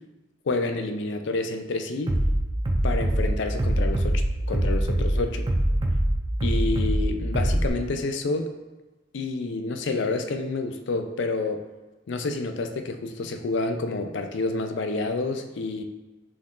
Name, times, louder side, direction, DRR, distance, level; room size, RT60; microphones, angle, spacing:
voice 1, 0.5-2.2 2.8-4.2 4.5-5.5 6.4-8.5 9.1-11.7 12.1-15.8, left 3 dB, 60° left, 6 dB, 0.4 m, -29 dB
Bass drum, 2.1-7.7, right 1 dB, 25° right, 0.5 m, -24 dB
6.0 x 2.4 x 3.7 m, 1.2 s
head